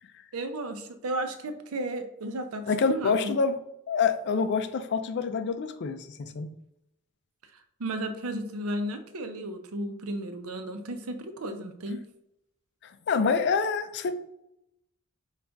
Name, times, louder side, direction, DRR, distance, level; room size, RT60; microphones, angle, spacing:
voice 1, 0.3-3.3 7.8-12.0, right 1 dB, 80° right, 8 dB, 0.6 m, -34 dB
voice 2, 2.7-3.6 3.9-6.5 12.8-14.2, left 5 dB, 55° left, 9 dB, 0.4 m, -27 dB
5.2 x 2.4 x 3.4 m, 0.81 s
head